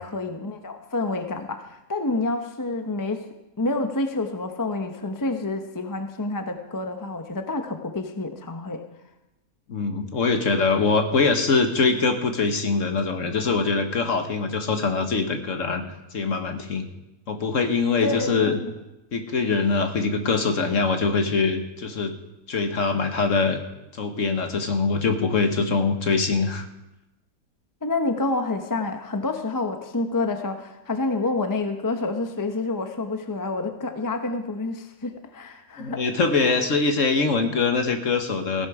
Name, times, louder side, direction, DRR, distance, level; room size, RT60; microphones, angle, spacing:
voice 1, 0.0-3.2 3.6-8.8 18.0-18.6 27.8-36.0, left 2 dB, 15° left, 6 dB, 0.7 m, -28 dB
voice 2, 9.7-15.8 16.1-16.9 17.3-18.6 19.1-22.1 22.5-23.6 23.9-26.7 35.8-38.7, left 4 dB, 55° left, 6 dB, 1.5 m, -23 dB
16.0 x 11.0 x 4.9 m, 0.95 s
omnidirectional pair, 1.7 m